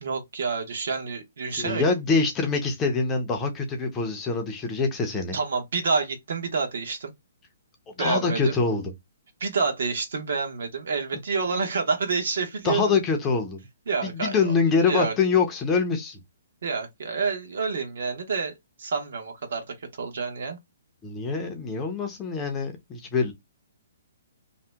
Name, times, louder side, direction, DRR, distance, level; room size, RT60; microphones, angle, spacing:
voice 1, 0.0-1.8 5.3-7.1 8.0-8.5 9.4-12.9 13.9-15.1 16.6-18.5 18.8-20.6, right 4 dB, 60° right, 0.9 m, -28 dB
voice 2, 1.5-5.4 8.0-8.9 12.6-13.6 14.0-16.2 21.0-23.3, left 4 dB, 10° left, 0.5 m, -25 dB
2.7 x 2.1 x 3.3 m
hypercardioid pair, 170°, 0 cm